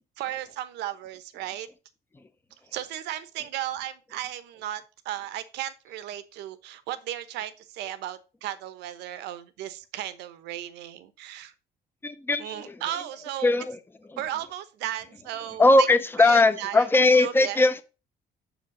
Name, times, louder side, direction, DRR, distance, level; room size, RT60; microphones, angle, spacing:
voice 1, 0.2-1.7 2.7-11.5 12.4-13.5 14.2-15.9 16.2-16.9 17.2-17.7, right 12 dB, 85° right, 1.0 m, -35 dB
voice 2, 12.0-12.7 13.4-13.8 15.6-17.8, left 2 dB, 15° left, 0.7 m, -20 dB
6.1 x 5.1 x 6.3 m
cardioid pair, 110°, 17 cm